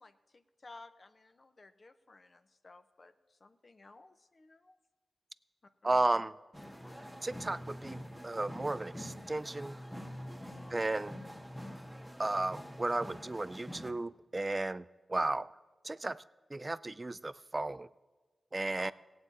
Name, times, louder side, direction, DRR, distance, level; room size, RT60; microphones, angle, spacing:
voice 1, 0.0-4.8 5.8-6.2 10.5-11.0 18.8-18.9, left 3 dB, 50° left, 10 dB, 0.8 m, -56 dB
voice 2, 5.8-6.3 7.2-9.8 10.7-11.2 12.2-15.5 15.8-16.2 16.5-17.9 18.5-18.9, right 2 dB, 35° right, 17 dB, 0.4 m, -34 dB
sound 1, 6.5-13.9, equal, 5° left, 1.4 m, -46 dB
17.5 x 8.6 x 4.1 m, 1.3 s
cardioid pair, 45°, 0 cm